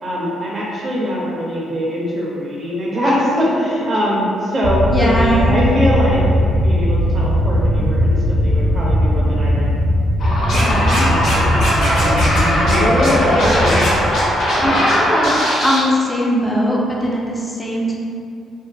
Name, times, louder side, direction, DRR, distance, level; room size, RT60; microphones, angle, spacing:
voice 1, 0.0-9.8 10.5-11.5 11.8-12.2 12.6-13.8, equal, 35° right, -5 dB, 0.5 m, -22 dB
sound 1, 4.6-14.7, equal, 85° right, 0.6 m, -18 dB
voice 2, 4.9-5.6 10.5-11.1 14.6-15.3 15.6-18.0, equal, 15° left, -4 dB, 0.5 m, -20 dB
sound 2, 10.2-15.4, equal, 55° left, 0.6 m, -19 dB
Scratching (performance technique), 10.5-11.3 11.6-12.4 12.7-12.8 13.0-14.9 15.2-15.8, equal, 80° left, 1.0 m, -22 dB
2.5 x 2.4 x 2.3 m, 2.4 s
cardioid pair, 90°, 0 cm